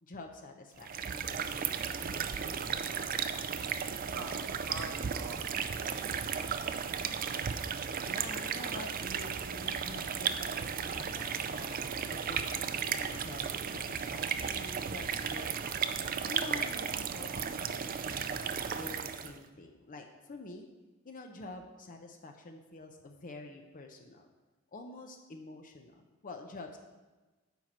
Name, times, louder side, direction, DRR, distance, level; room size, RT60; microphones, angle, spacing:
voice 1, 0.0-3.3 8.0-15.7 16.2-20.7 21.0-24.3 24.7-26.8, left 2 dB, 40° left, 4 dB, 0.7 m, -48 dB
sound 1, 0.8-19.4, right 7 dB, 45° right, 0.4 m, -35 dB
voice 2, 4.0-7.0, right 2 dB, 80° right, 0 dB, 1.4 m, -46 dB
9.2 x 4.4 x 6.1 m, 1.2 s
head